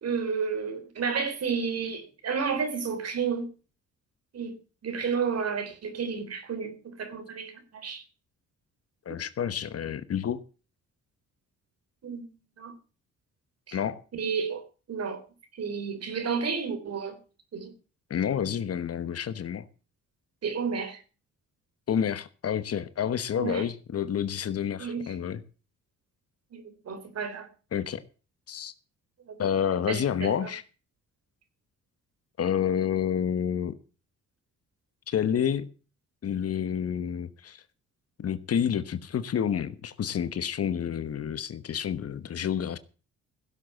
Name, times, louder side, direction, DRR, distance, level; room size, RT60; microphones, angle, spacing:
voice 1, 0.0-3.5 4.3-4.5 4.8-8.0 12.0-12.3 12.6-12.7 13.7-13.8 14.1-14.6 14.9-15.2 15.5-17.2 17.5-17.7 20.4-21.0 23.4-23.7 24.8-25.1 26.5-27.5 29.3-29.4 29.9-30.5, right 5 dB, 55° right, 3.7 m, -31 dB
voice 2, 9.0-10.4 13.7-14.0 18.1-19.6 21.9-25.4 27.7-28.0 28.5-28.7 29.4-30.6 32.4-33.8 35.1-35.7 36.2-37.6 38.2-42.8, left 8 dB, 50° left, 1.2 m, -29 dB
16.0 x 8.0 x 6.9 m
cardioid pair, 90°, 30 cm